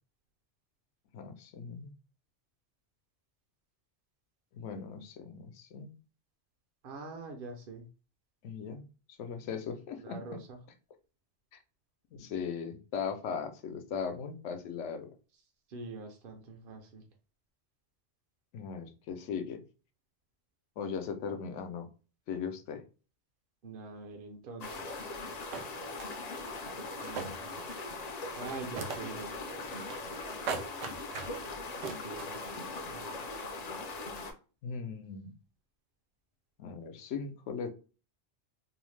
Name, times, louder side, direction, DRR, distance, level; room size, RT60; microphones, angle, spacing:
voice 1, 1.1-1.9 4.5-6.0 8.4-10.2 11.5-11.6 12.1-15.1 18.5-19.6 20.8-21.9 22.3-22.8 34.6-35.3 36.6-37.7, left 6 dB, 90° left, 7 dB, 0.9 m, -38 dB
voice 2, 6.8-7.9 10.0-10.6 15.7-17.1 23.6-25.2 27.0-27.6 28.3-30.2 31.8-33.3, right 3 dB, 60° right, 3 dB, 0.7 m, -45 dB
sound 1, 24.6-34.3, left 3 dB, 55° left, 0.5 m, -40 dB
sound 2, 25.5-26.2 26.8-27.9 28.2-29.2 29.5-30.2 30.5-31.4 31.8-32.3, right 5 dB, 90° right, 0.9 m, -39 dB
2.7 x 2.0 x 3.1 m, 0.35 s
omnidirectional pair, 1.2 m